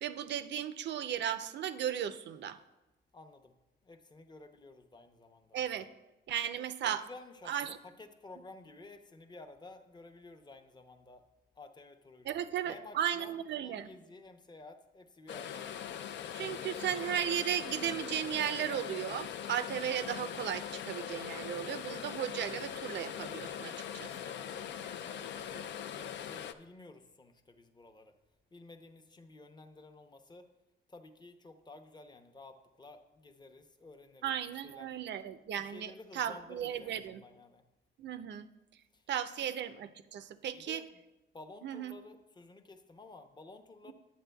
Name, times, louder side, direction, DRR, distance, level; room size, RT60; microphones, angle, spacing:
voice 1, 0.0-2.6 5.5-5.9 6.3-7.0 7.5-7.8 12.2-13.9 16.3-24.3 34.2-37.2 38.0-38.5 39.1-40.8 41.6-41.9 43.9-44.0, right 9 dB, 60° right, 12 dB, 0.5 m, -36 dB
voice 2, 3.1-3.5 3.8-5.6 6.5-11.2 11.5-15.7 16.3-16.9 24.5-28.1 28.5-30.5 30.9-35.0 35.5-37.6 38.9-39.5 40.5-41.0 41.3-43.9, left 2 dB, 20° left, 7 dB, 0.7 m, -53 dB
sound 1, 15.3-26.5, left 9 dB, 65° left, 0.4 m, -41 dB
10.0 x 7.6 x 2.3 m, 1.0 s
cardioid pair, 90°, 20 cm